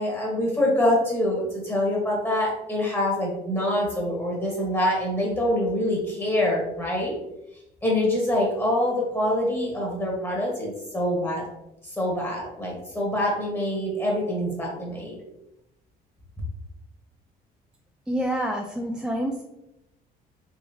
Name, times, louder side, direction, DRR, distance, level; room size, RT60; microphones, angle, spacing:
voice 1, 0.0-7.1 7.8-11.4 11.9-15.2, left 1 dB, 15° left, -3 dB, 1.1 m, -25 dB
voice 2, 18.1-19.4, right 1 dB, 5° right, 0 dB, 0.3 m, -27 dB
3.6 x 3.3 x 2.8 m, 0.88 s
cardioid pair, 110°, 17 cm